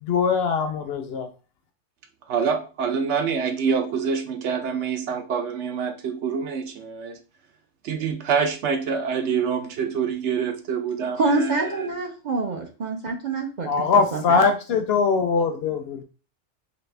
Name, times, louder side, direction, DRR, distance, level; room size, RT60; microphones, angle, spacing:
voice 1, 0.0-1.3 13.7-16.0, left 5 dB, 65° left, 0.7 m, -22 dB
voice 2, 2.3-7.2 7.8-11.9, right 6 dB, 70° right, 0.9 m, -26 dB
voice 3, 11.2-13.7 14.1-14.4, right 3 dB, 50° right, 0.5 m, -26 dB
4.1 x 2.7 x 3.2 m
omnidirectional pair, 1.3 m